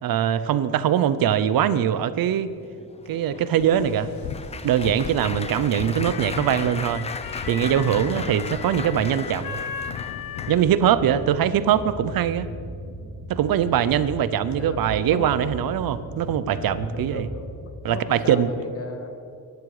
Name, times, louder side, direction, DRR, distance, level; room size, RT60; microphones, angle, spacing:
voice 1, 0.0-2.5 3.1-4.1 4.6-7.1 7.5-9.6 10.5-12.5 13.3-17.3 17.8-18.5, right 9 dB, 80° right, 14 dB, 0.9 m, -22 dB
Applause, 2.6-10.9 11.5-11.8 12.0-12.2, left 4 dB, 20° left, 0.6 m, -37 dB
sound 1, 3.6-10.6, left 7 dB, 80° left, 1.0 m, -35 dB
voice 2, 5.9-6.3 8.0-8.5 14.5-15.5 16.5-19.1, left 3 dB, 40° left, 6 dB, 1.7 m, -37 dB
sound 2, 10.5-17.5, right 1 dB, 25° right, 2.9 m, -37 dB
23.0 x 11.5 x 5.0 m, 2.5 s
wide cardioid pair, 155°, 35 cm